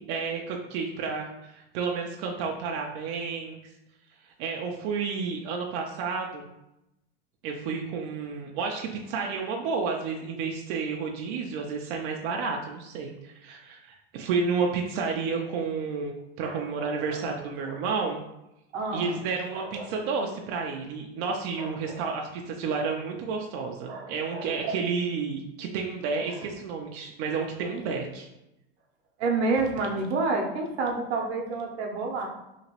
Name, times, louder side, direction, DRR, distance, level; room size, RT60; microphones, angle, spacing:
voice 1, 0.1-3.6 4.4-6.5 7.4-18.2 18.9-28.3, right 5 dB, 55° right, 1 dB, 0.5 m, -31 dB
voice 2, 16.4-17.8 18.7-19.2 19.5-19.9 21.6-22.1 23.9-24.7 26.3-26.5 29.2-32.3, right 3 dB, 80° right, 1 dB, 0.8 m, -30 dB
2.9 x 2.8 x 2.8 m, 0.89 s
supercardioid pair, 125°, 33 cm